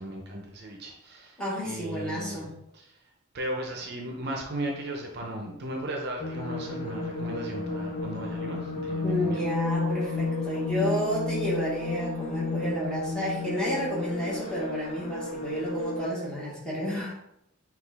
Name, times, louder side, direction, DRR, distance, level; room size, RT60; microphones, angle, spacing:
voice 1, 0.0-2.5 2.7-3.0 3.3-9.4, right 1 dB, 50° right, 1 dB, 0.6 m, -36 dB
voice 2, 1.4-2.5 9.0-17.1, equal, 5° left, -6 dB, 1.3 m, -31 dB
sound 1, 6.2-16.1, left 3 dB, 30° left, 0.5 m, -32 dB
5.9 x 2.5 x 3.4 m, 0.83 s
head